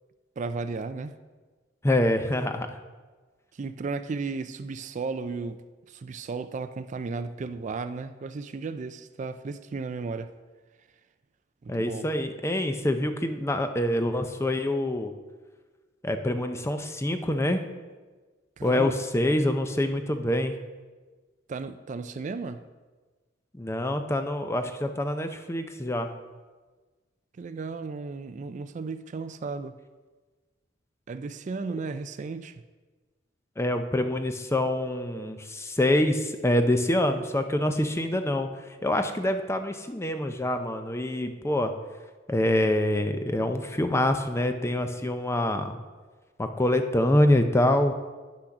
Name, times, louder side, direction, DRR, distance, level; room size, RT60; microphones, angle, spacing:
voice 1, 0.4-1.2 3.5-5.6 5.9-10.3 11.6-12.1 18.6-19.0 21.5-22.6 27.4-29.8 31.1-32.6, right 4 dB, 40° right, 11 dB, 0.4 m, -34 dB
voice 2, 1.8-2.7 11.7-15.1 16.0-17.6 18.6-20.5 23.5-26.1 33.6-38.5 38.8-41.7 42.3-45.7 46.4-47.9, left 1 dB, 15° left, 7 dB, 0.6 m, -25 dB
10.0 x 6.1 x 6.0 m, 1.3 s
head